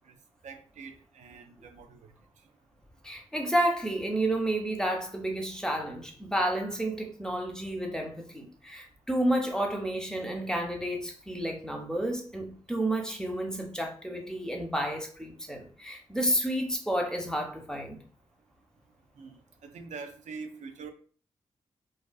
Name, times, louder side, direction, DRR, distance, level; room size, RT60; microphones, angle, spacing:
voice 1, 0.4-2.1 19.2-20.9, right 5 dB, 70° right, 0.4 m, -44 dB
voice 2, 3.0-18.0, right 1 dB, 5° left, 0.7 m, -31 dB
2.4 x 2.3 x 2.3 m
supercardioid pair, 45°, 13 cm